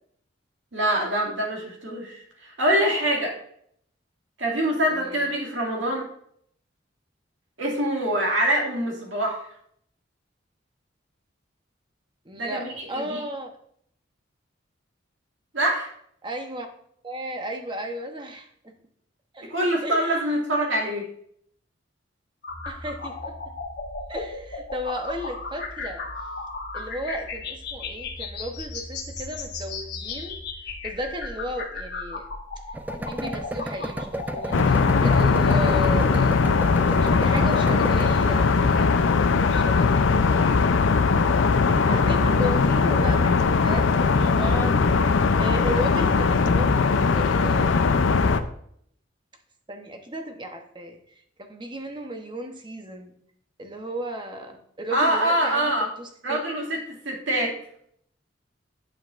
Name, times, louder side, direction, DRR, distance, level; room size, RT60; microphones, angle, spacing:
voice 1, 0.7-3.3 4.4-6.1 7.6-9.4 12.4-13.2 15.5-15.9 19.5-21.1 41.8-42.0 54.9-55.9 56.2-56.8 57.0-57.5, right 1 dB, 70° right, -2 dB, 2.3 m, -25 dB
voice 2, 4.9-5.4 12.2-13.6 16.2-16.7 17.0-18.7 19.3-19.5 19.8-20.2 22.6-23.3 24.1-26.0 26.7-32.3 32.9-36.4 37.0-40.5 41.9-43.3 43.6-44.8 45.4-48.4 49.7-51.0 51.4-53.1 53.6-56.4, equal, 25° right, 4 dB, 0.9 m, -35 dB
sound 1, 22.4-37.4, left 3 dB, 60° left, 1.2 m, -35 dB
sound 2, 32.7-39.7, right 1 dB, 10° right, 0.4 m, -33 dB
sound 3, 34.5-48.4, left 4 dB, 75° left, 0.5 m, -20 dB
8.9 x 7.6 x 2.5 m, 0.67 s
head